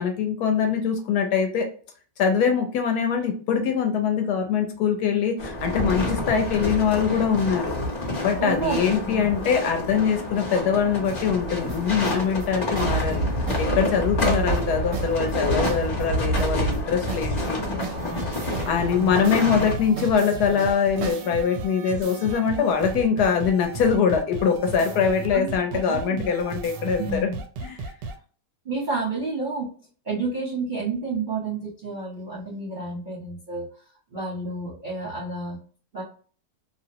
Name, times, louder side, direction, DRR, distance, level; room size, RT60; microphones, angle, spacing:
voice 1, 0.0-1.7 2.2-7.7 8.2-13.2 13.6-17.6 18.6-27.2 27.6-27.8, left 6 dB, 70° left, 4 dB, 1.0 m, -23 dB
sound 1, 5.4-19.8, left 1 dB, 40° left, 0.8 m, -27 dB
voice 2, 8.4-9.3 12.8-13.1 17.6-18.3 18.8-19.2 25.3-25.5 25.9-26.3 27.0-27.4 28.6-29.7 30.0-33.7 34.1-35.6 35.9-36.0, right 3 dB, 45° right, -4 dB, 0.6 m, -30 dB
sound 2, 11.7-21.3, right 6 dB, 70° right, 0.9 m, -36 dB
sound 3, 18.0-28.2, right 3 dB, 90° right, 1.3 m, -35 dB
2.8 x 2.0 x 2.7 m, 0.41 s
omnidirectional pair, 1.9 m